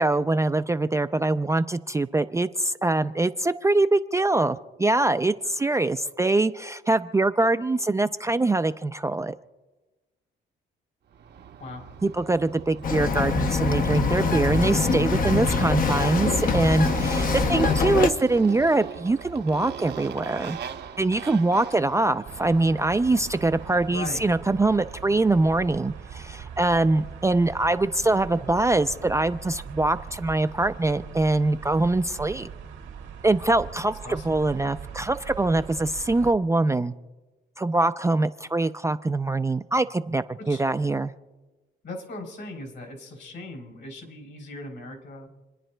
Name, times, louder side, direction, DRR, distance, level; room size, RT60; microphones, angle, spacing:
voice 1, 0.0-9.3 12.0-20.6 21.0-32.5 33.2-36.9 37.6-41.1, right 2 dB, 15° right, 9 dB, 0.4 m, -23 dB
Motorcycle, 11.2-23.9, right 8 dB, 60° right, 0.8 m, -37 dB
Bird vocalization bird call bird song, 12.8-18.1, left 5 dB, 45° left, 0.7 m, -24 dB
voice 2, 12.9-13.4 23.9-24.2 34.0-34.4 40.4-40.6 41.8-45.3, left 2 dB, 65° left, 4 dB, 3.4 m, -39 dB
sound 1, 22.3-36.3, right 7 dB, 85° right, 1.6 m, -41 dB
29.0 x 10.0 x 2.2 m, 1.1 s
cardioid pair, 90°, 20 cm